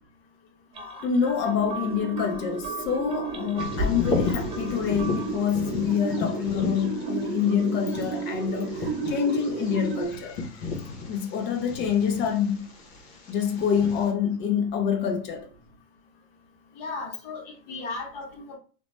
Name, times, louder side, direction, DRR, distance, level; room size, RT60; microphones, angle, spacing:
sound 1, 0.7-5.5, equal, 20° right, 0.4 m, -36 dB
voice 1, 1.0-10.5 11.1-12.7 13.3-15.5, left 7 dB, 35° left, 0.6 m, -26 dB
sound 2, 1.5-10.1, right 5 dB, 65° right, 0.8 m, -34 dB
Bird vocalization bird call bird song, 3.6-14.1, left 3 dB, 85° left, 1.0 m, -34 dB
voice 2, 16.8-18.6, left 3 dB, 70° left, 1.3 m, -36 dB
2.8 x 2.1 x 3.0 m
supercardioid pair, 140°, 31 cm